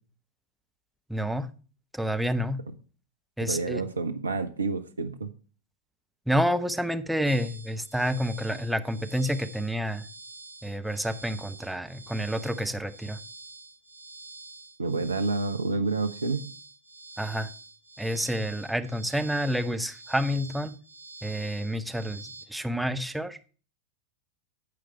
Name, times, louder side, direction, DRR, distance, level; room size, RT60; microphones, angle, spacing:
voice 1, 1.1-1.5 1.9-2.6 3.4-3.8 6.3-10.1 10.6-13.2 17.2-17.5 18.0-20.7 21.2-23.4, equal, ahead, 0.8 m, -29 dB
voice 2, 3.4-5.3 14.8-16.5, right 3 dB, 75° right, 0.9 m, -29 dB
sound 1, 7.3-22.5, right 3 dB, 90° left, 1.1 m, -47 dB
13.5 x 5.0 x 4.5 m
figure-of-eight pair, 90°, 0 cm